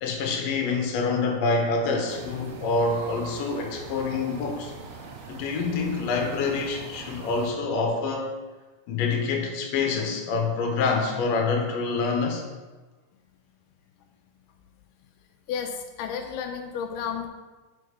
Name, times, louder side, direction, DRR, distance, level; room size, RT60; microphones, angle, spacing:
voice 1, 0.0-4.7 5.3-8.3 8.9-12.4, left 4 dB, 70° left, 1 dB, 1.8 m, -26 dB
sound 1, 2.1-7.5, right 4 dB, 75° right, 1.6 m, -42 dB
voice 2, 15.5-17.3, left 7 dB, 85° left, 4 dB, 2.1 m, -32 dB
5.2 x 4.6 x 4.9 m, 1.2 s
omnidirectional pair, 3.6 m